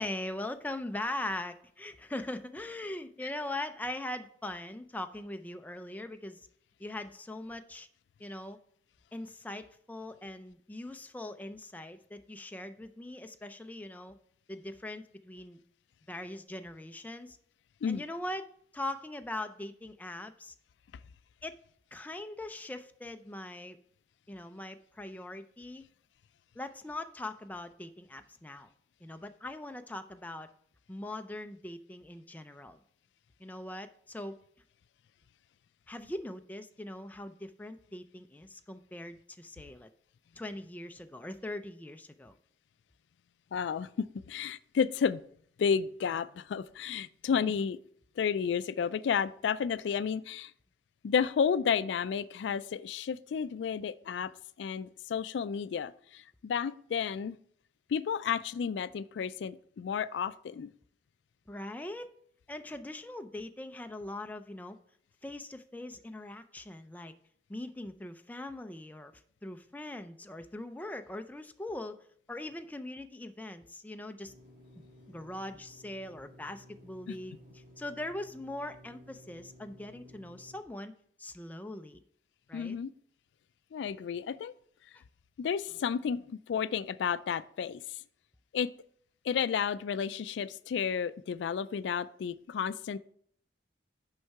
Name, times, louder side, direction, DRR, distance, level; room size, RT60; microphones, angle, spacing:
voice 1, 0.0-6.4 6.8-7.9 8.2-8.6 9.1-14.2 14.5-15.6 16.1-17.4 17.9-18.5 18.7-20.5 21.4-21.6 21.9-23.8 24.3-25.8 26.6-28.7 29.0-30.5 30.9-32.8 33.4-34.4 35.9-39.9 40.4-42.4 47.4-47.5 61.5-62.1 62.5-64.8 65.2-67.1 67.5-71.9 72.3-74.3 75.1-80.9 81.2-82.0 82.5-82.8, left 1 dB, 10° left, 8 dB, 0.4 m, -41 dB
voice 2, 43.5-45.2 45.6-47.8 48.2-50.5 51.0-54.3 54.6-57.4 57.9-60.7 77.1-77.2 82.5-82.9 83.7-84.5 85.4-88.0 88.5-88.7 89.2-93.0, left 7 dB, 85° left, 16 dB, 0.3 m, -32 dB
sound 1, 74.3-80.6, left 1 dB, 50° right, 1.6 m, -56 dB
6.5 x 5.4 x 4.6 m, 0.63 s
head